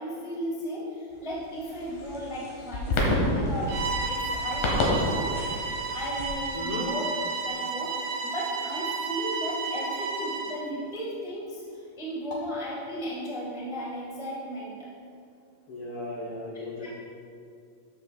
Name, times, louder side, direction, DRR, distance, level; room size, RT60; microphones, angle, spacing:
voice 1, 0.0-3.7 4.0-5.3 5.9-7.0 7.4-14.9 16.8-16.9, equal, 5° right, -6 dB, 0.4 m, -35 dB
sound 1, 1.1-6.3, left 1 dB, 80° left, 2.9 m, -29 dB
Bowed string instrument, 3.7-10.6, right 4 dB, 80° right, 2.4 m, -32 dB
voice 2, 15.7-16.9, left 2 dB, 60° left, -6 dB, 1.5 m, -36 dB
13.5 x 6.8 x 2.4 m, 2.4 s
omnidirectional pair, 3.9 m